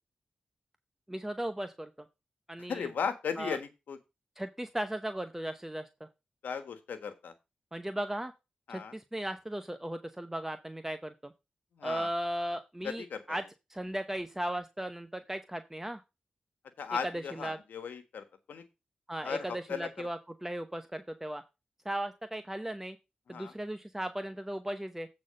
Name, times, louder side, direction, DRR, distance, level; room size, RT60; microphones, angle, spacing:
voice 1, 1.1-1.9 2.5-2.9 3.4-3.6 4.4-6.1 7.7-8.3 8.7-11.3 11.8-13.4 13.7-16.0 17.1-17.6 19.1-21.4 21.8-23.0 23.3-25.1, right 1 dB, 10° right, 8 dB, 0.9 m, -36 dB
voice 2, 2.6-4.0 6.4-7.3 8.7-8.9 11.7-12.1 12.8-13.2 16.8-18.6 19.2-20.1 23.3-23.5, left 6 dB, 85° left, 9 dB, 1.3 m, -37 dB
8.2 x 4.1 x 6.4 m, 0.26 s
cardioid pair, 50°, 3 cm